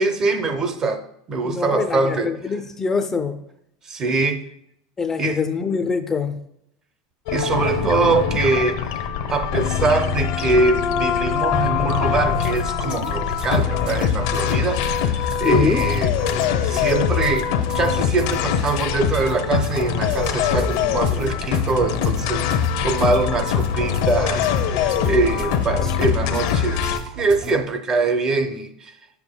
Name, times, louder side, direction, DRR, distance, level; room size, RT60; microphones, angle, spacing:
voice 1, 0.0-2.3 3.8-4.4 5.2-5.4 7.3-28.9, right 3 dB, 30° right, 0.7 m, -23 dB
voice 2, 1.4-3.4 5.0-6.4 15.4-15.9, left 5 dB, 20° left, 0.4 m, -24 dB
sound 1, 7.3-27.0, left 8 dB, 70° left, 0.7 m, -23 dB
sound 2, 12.2-27.5, right 5 dB, 50° right, 1.3 m, -36 dB
9.2 x 6.9 x 2.2 m
supercardioid pair, 125°, 2 cm